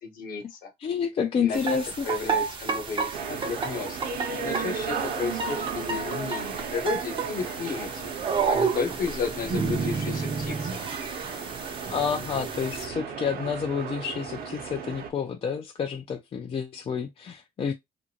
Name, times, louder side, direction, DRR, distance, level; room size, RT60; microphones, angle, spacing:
voice 1, 0.0-0.7 1.4-1.8 2.0-4.0 4.4-8.1 8.4-10.8, left 5 dB, 55° left, 1.1 m, -33 dB
voice 2, 0.8-2.3 11.9-17.7, left 6 dB, 35° left, 0.4 m, -29 dB
sound 1, 1.5-12.9, right 5 dB, 30° right, 0.6 m, -31 dB
sound 2, 3.1-15.1, right 6 dB, 60° right, 0.8 m, -35 dB
2.6 x 2.5 x 2.8 m
cardioid pair, 110°, 17 cm